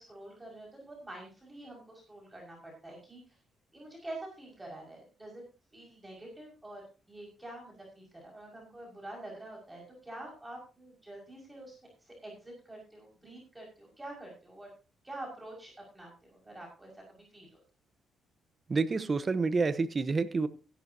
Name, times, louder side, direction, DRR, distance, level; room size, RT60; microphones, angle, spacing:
voice 1, 0.0-3.4 3.7-5.4 5.7-14.7 15.0-17.6, right 1 dB, 15° right, -1 dB, 5.6 m, -47 dB
voice 2, 18.7-20.5, right 4 dB, 35° right, 13 dB, 1.1 m, -28 dB
16.0 x 11.5 x 2.8 m, 0.33 s
cardioid pair, 90°, 0 cm